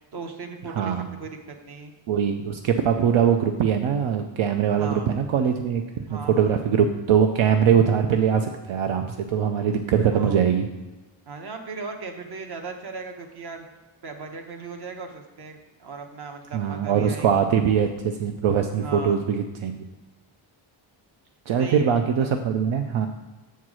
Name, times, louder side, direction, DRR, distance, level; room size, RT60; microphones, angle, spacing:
voice 1, 0.1-1.9 4.7-5.1 6.1-6.6 10.1-10.4 11.3-13.7 14.0-17.4 18.8-19.2 21.6-22.3, right 4 dB, 55° right, 4 dB, 1.1 m, -37 dB
voice 2, 0.7-1.0 2.1-5.8 6.1-10.6 16.5-19.8 21.5-23.1, right 8 dB, 80° right, 5 dB, 0.6 m, -22 dB
7.1 x 4.6 x 6.1 m, 1.2 s
wide cardioid pair, 145°, 48 cm